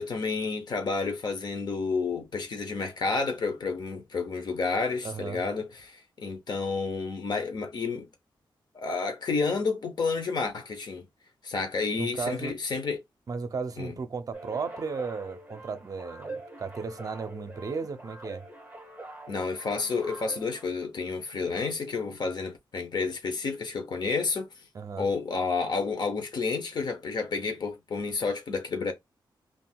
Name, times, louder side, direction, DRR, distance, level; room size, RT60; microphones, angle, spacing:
voice 1, 0.0-8.1 8.7-11.1 11.4-13.0 13.8-13.9 19.3-24.5 25.0-28.9, left 4 dB, 55° left, 0.7 m, -30 dB
voice 2, 5.0-5.4 12.0-12.6 13.3-18.4 24.7-25.1, right 5 dB, 45° right, 0.5 m, -35 dB
sound 1, 14.3-20.7, right 2 dB, 15° right, 0.9 m, -44 dB
3.6 x 2.4 x 2.3 m
wide cardioid pair, 130°, 9 cm